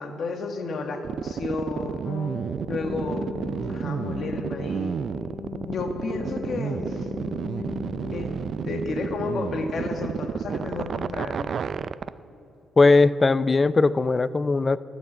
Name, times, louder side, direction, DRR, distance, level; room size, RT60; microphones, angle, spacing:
voice 1, 0.0-2.1 2.7-3.3 3.7-4.9 5.6-7.1 8.1-11.6, left 3 dB, 60° left, 4 dB, 1.6 m, -32 dB
sound 1, 1.0-12.1, right 7 dB, 55° right, 0.4 m, -30 dB
sound 2, 2.0-9.1, left 5 dB, 85° left, 0.7 m, -38 dB
voice 2, 12.8-14.8, left 3 dB, 25° left, 16 dB, 0.4 m, -19 dB
13.0 x 13.0 x 7.8 m, 2.9 s
cardioid pair, 90°, 0 cm